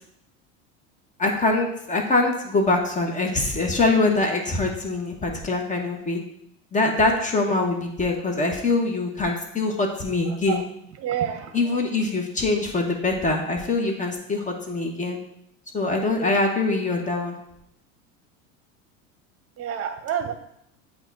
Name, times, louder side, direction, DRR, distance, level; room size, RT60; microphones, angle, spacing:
voice 1, 1.2-6.2 6.7-10.6 11.5-15.2 15.7-17.4, left 2 dB, 20° left, 2 dB, 1.2 m, -23 dB
voice 2, 11.0-11.6 19.6-20.3, right 9 dB, 40° right, 8 dB, 0.9 m, -28 dB
7.9 x 2.7 x 4.6 m, 0.77 s
hypercardioid pair, 100°, 39 cm